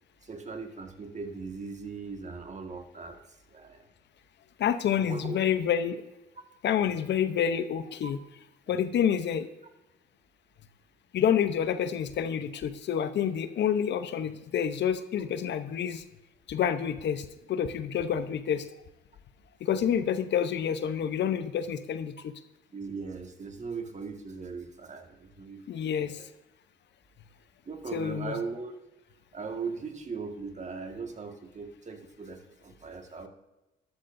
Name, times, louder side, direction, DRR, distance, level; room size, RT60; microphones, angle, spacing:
voice 1, 0.2-3.2 3.5-3.9 5.1-5.4 8.0-8.1 22.7-25.9 26.2-26.3 27.6-28.7 29.3-33.3, right 4 dB, 35° right, 5 dB, 1.8 m, -39 dB
voice 2, 4.6-6.0 6.6-8.2 8.7-9.5 11.1-16.0 16.5-18.7 19.6-22.3 25.7-26.3 27.9-28.4, left 8 dB, 60° left, 11 dB, 0.8 m, -28 dB
13.0 x 12.0 x 2.7 m, 1.0 s
supercardioid pair, 75°, 20 cm